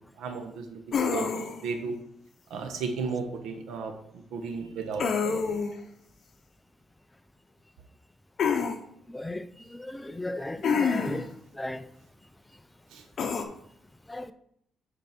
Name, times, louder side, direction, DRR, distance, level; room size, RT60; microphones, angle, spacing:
voice 1, 0.7-1.9 2.5-3.9 4.3-5.6, right 5 dB, 85° right, 6 dB, 1.2 m, -34 dB
sound 1, 0.9-1.7 5.0-5.8 8.4-8.8 10.6-11.3 13.2-13.4, left 6 dB, 55° left, 0.9 m, -27 dB
voice 2, 9.1-9.5 9.9-11.3 11.6-11.8 14.1-14.3, left 1 dB, 10° left, 11 dB, 0.5 m, -34 dB
8.9 x 4.5 x 4.4 m, 0.71 s
cardioid pair, 110°, 0 cm